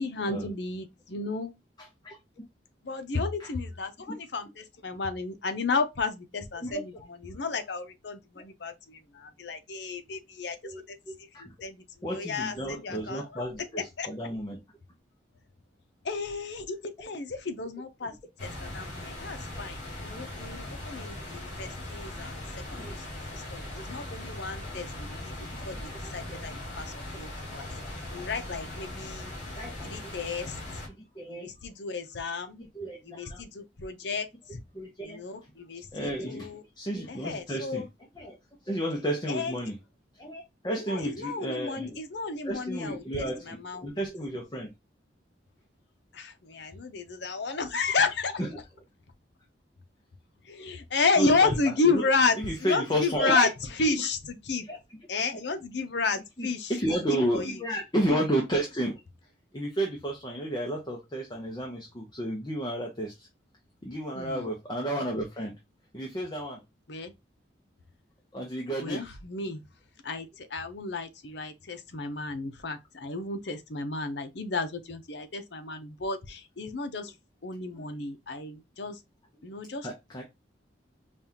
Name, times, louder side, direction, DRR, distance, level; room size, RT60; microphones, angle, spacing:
voice 1, 0.0-1.5 2.8-14.1 16.0-27.6 28.1-29.3 29.8-30.8 31.3-32.6 33.0-34.6 35.0-36.6 37.1-37.9 39.3-39.6 40.7-44.0 46.1-48.4 50.4-54.7 55.1-56.8 57.1-57.6 64.1-64.5 66.9-67.1 68.8-69.6 70.0-77.2 77.4-79.0 79.4-79.9, left 4 dB, 65° left, 0.7 m, -32 dB
voice 2, 10.6-11.5 12.0-14.6 22.3-22.9 25.5-26.4 27.6-28.0 29.5-30.1 31.0-31.5 32.6-33.4 34.7-35.2 35.9-36.5 36.8-37.8 38.2-38.4 38.6-39.7 40.2-42.0 42.4-43.6 43.8-44.7 48.4-48.5 51.2-51.5 51.9-52.0 52.4-53.5 53.9-54.0 54.7-54.8 56.4-59.0 59.5-63.3 63.8-65.5 65.9-66.6 68.3-69.0 77.7-77.9 79.8-80.2, right 1 dB, 20° left, 0.7 m, -32 dB
sound 1, 18.4-30.9, left 1 dB, 40° left, 2.3 m, -39 dB
5.3 x 2.4 x 2.7 m
head